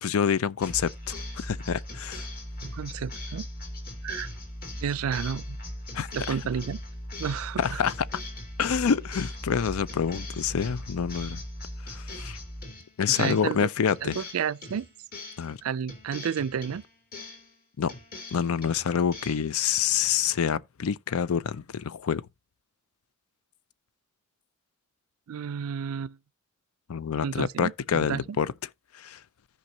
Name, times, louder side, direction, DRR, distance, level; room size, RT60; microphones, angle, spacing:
voice 1, 0.0-2.3 5.9-6.4 7.6-7.9 8.6-11.4 11.8-12.4 13.0-14.2 15.4-15.6 17.8-17.9 18.3-22.3 26.9-28.5 28.9-29.2, left 7 dB, 80° left, 0.5 m, -27 dB
sound 1, 0.6-13.6 13.9-15.5 15.9-17.5 17.9-19.5, left 1 dB, 45° left, 2.5 m, -39 dB
voice 2, 2.6-3.5 4.0-4.3 4.8-5.6 6.1-6.8 7.2-7.8 13.1-13.7 14.0-14.9 15.6-16.8 25.3-26.2 27.2-28.2, right 7 dB, 75° right, 0.4 m, -31 dB
14.5 x 5.2 x 2.8 m
head